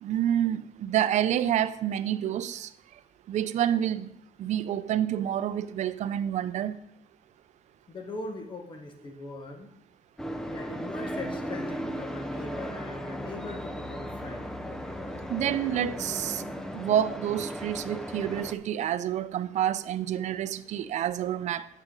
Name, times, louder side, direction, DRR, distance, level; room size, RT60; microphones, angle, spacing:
voice 1, 0.0-2.7 3.3-4.1 4.4-6.8 15.3-16.4 16.7-21.7, right 10 dB, 55° right, 0.4 m, -28 dB
voice 2, 7.9-9.7 10.5-14.5, left 2 dB, 35° left, 1.2 m, -40 dB
sound 1, 10.2-18.5, equal, 5° left, 0.5 m, -36 dB
10.0 x 6.6 x 3.8 m
cardioid pair, 155°, 15 cm